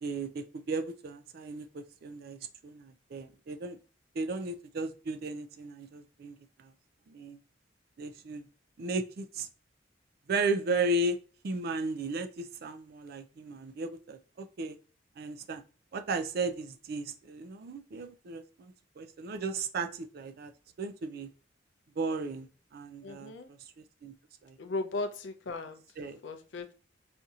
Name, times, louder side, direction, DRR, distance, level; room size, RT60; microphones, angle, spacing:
voice 1, 0.0-3.8 4.1-6.7 7.1-7.4 8.0-8.5 8.8-9.5 10.3-11.2 11.4-14.8 15.2-15.6 15.9-20.5 20.8-21.3 22.0-24.1 24.4-24.6 26.0-26.2, right 2 dB, 55° right, 8 dB, 0.4 m, -35 dB
voice 2, 23.0-23.5 24.6-25.8 26.2-26.7, left 3 dB, 70° left, 7 dB, 0.5 m, -36 dB
4.2 x 2.7 x 2.3 m, 0.37 s
head